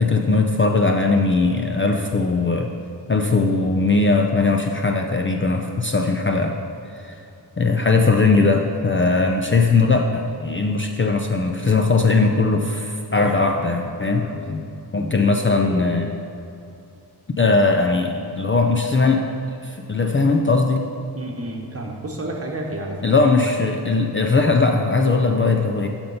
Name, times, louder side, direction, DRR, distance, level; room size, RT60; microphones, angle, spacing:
voice 1, 0.0-2.7 3.1-6.5 7.0-7.2 7.6-14.7 14.9-16.2 17.3-19.3 19.6-20.9 23.0-25.9, left 3 dB, 30° left, 2 dB, 0.5 m, -19 dB
voice 2, 21.1-23.5, right 1 dB, 35° right, 0 dB, 1.2 m, -31 dB
12.0 x 4.4 x 5.5 m, 2.8 s
wide cardioid pair, 155°, 41 cm